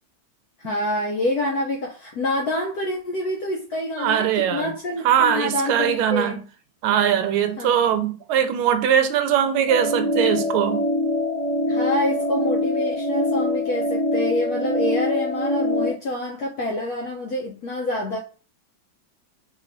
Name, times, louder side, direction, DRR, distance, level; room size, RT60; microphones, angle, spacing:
voice 1, 0.6-6.4 7.6-7.7 7.9-8.0 11.7-18.2, left 1 dB, 75° left, 0.9 m, -27 dB
voice 2, 4.0-4.7 5.0-6.4 6.8-10.8, right 9 dB, 85° right, 1.4 m, -21 dB
sound 1, 9.7-15.9, left 1 dB, 50° left, 1.2 m, -24 dB
3.5 x 3.2 x 2.5 m
omnidirectional pair, 2.3 m